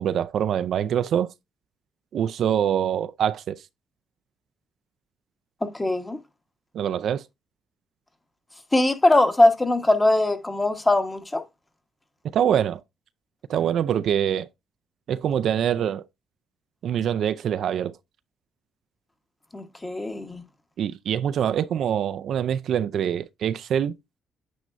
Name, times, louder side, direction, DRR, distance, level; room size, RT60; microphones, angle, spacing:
voice 1, 0.0-1.3 2.1-3.6 6.7-7.2 12.3-12.8 13.5-14.5 15.1-16.0 16.8-18.0 20.8-23.9, right 9 dB, 70° right, 0.4 m, -24 dB
voice 2, 5.6-6.2 8.7-11.4 19.5-20.4, left 2 dB, 15° left, 1.2 m, -21 dB
9.3 x 4.3 x 2.5 m
cardioid pair, 90°, 0 cm